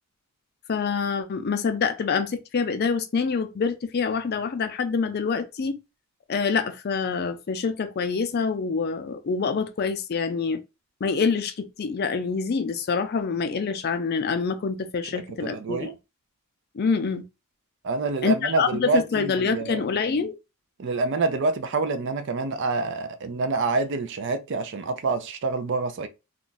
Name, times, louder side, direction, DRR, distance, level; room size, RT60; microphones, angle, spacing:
voice 1, 0.7-5.8 6.3-10.6 11.0-15.9 16.7-17.2 18.2-20.3, left 5 dB, 45° left, 0.4 m, -26 dB
voice 2, 15.1-15.9 17.8-19.8 20.8-26.1, right 3 dB, 55° right, 0.4 m, -27 dB
2.4 x 2.2 x 3.8 m
head